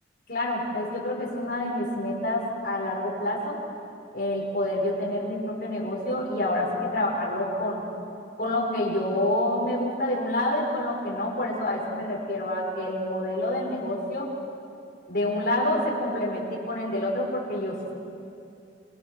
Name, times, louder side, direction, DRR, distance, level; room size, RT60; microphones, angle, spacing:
voice 1, 0.3-3.6 4.1-7.8 8.4-14.3 15.1-17.9, left 1 dB, 55° left, -3 dB, 6.3 m, -28 dB
28.5 x 24.0 x 6.4 m, 2.5 s
head